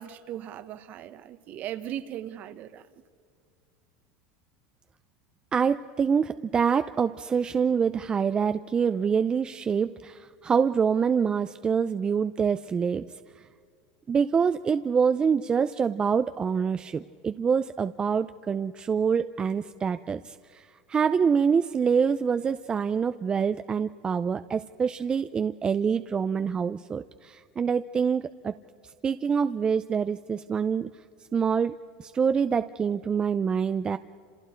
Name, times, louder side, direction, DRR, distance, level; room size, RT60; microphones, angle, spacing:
voice 1, 0.0-2.9, right 11 dB, 45° right, 1.2 m, -38 dB
voice 2, 5.5-13.1 13.4-13.5 14.1-28.5 29.0-30.9 31.3-34.0, right 6 dB, 25° right, 0.5 m, -26 dB
29.0 x 27.5 x 4.5 m
supercardioid pair, 120°, 4 cm